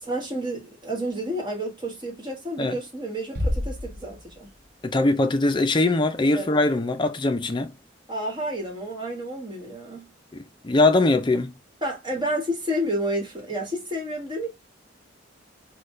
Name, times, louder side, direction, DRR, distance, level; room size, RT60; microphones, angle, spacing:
voice 1, 0.0-4.5 6.3-6.5 8.1-10.1 11.8-14.5, equal, 25° right, 1.3 m, -30 dB
Bass drum, 3.3-4.8, left 1 dB, 50° right, 0.9 m, -29 dB
voice 2, 4.8-7.7 10.6-11.5, left 2 dB, 25° left, 0.5 m, -21 dB
4.0 x 2.2 x 3.1 m
head